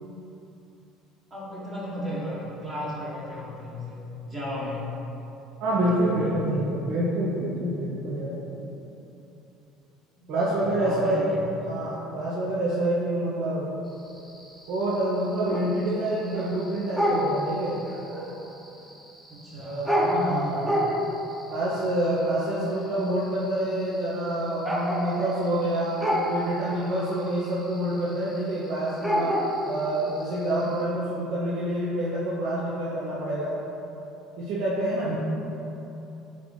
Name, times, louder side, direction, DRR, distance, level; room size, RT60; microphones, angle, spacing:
voice 1, 1.3-4.9 5.7-6.7 10.5-11.4 19.3-20.8 35.0-35.2, left 1 dB, 35° right, -8 dB, 1.1 m, -34 dB
voice 2, 5.6-8.7 10.3-11.3 11.6-13.8 14.7-17.8 19.6-20.6 21.5-26.0 26.3-29.3 29.6-33.6 34.4-35.2, right 1 dB, 65° right, -8 dB, 0.7 m, -27 dB
sound 1, 13.9-30.8, equal, 5° right, 0.8 m, -30 dB
3.8 x 3.7 x 3.2 m, 2.9 s
hypercardioid pair, 70°, 0 cm